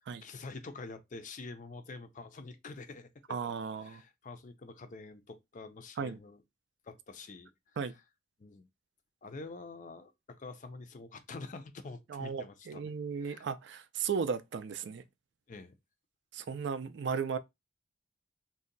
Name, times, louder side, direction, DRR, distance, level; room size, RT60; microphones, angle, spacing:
voice 1, 0.2-3.5 3.8-6.4 6.8-7.5 7.9-8.0 8.4-8.7 9.2-12.9 13.2-13.5 15.5-15.7, left 3 dB, 40° left, 0.4 m, -47 dB
voice 2, 3.3-4.0 6.0-6.2 7.8-7.9 12.1-15.0 16.3-17.4, right 6 dB, 60° right, 0.3 m, -35 dB
2.6 x 2.1 x 3.8 m
head